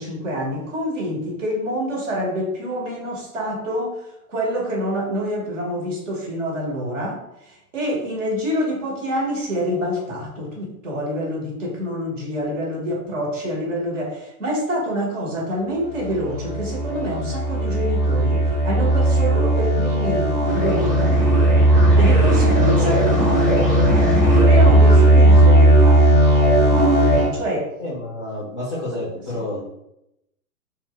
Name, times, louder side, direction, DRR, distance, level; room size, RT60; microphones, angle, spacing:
voice 1, 0.0-21.6 21.9-23.1 24.3-26.2 27.3-27.7 28.9-29.5, equal, 50° right, -1 dB, 1.1 m, -27 dB
sound 1, 15.9-27.3, right 1 dB, 20° right, 1.1 m, -16 dB
voice 2, 27.8-29.6, left 1 dB, 20° left, -8 dB, 0.4 m, -29 dB
2.5 x 2.2 x 3.6 m, 0.83 s
figure-of-eight pair, 115°, 48 cm